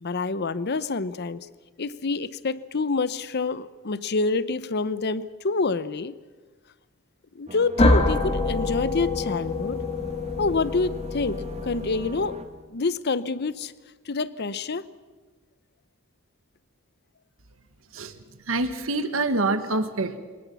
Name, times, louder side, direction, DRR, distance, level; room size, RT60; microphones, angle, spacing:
voice 1, 0.0-1.4 1.8-6.1 7.3-9.8 10.4-12.4 12.7-13.7 14.1-14.8, left 3 dB, 50° left, 16 dB, 0.7 m, -27 dB
sound 1, 7.5-12.5, right 1 dB, 30° right, 1.2 m, -42 dB
sound 2, 7.8-12.5, left 2 dB, 30° left, 1.7 m, -25 dB
voice 2, 18.5-20.2, right 2 dB, 65° right, 10 dB, 1.4 m, -26 dB
22.5 x 20.0 x 7.0 m, 1.4 s
head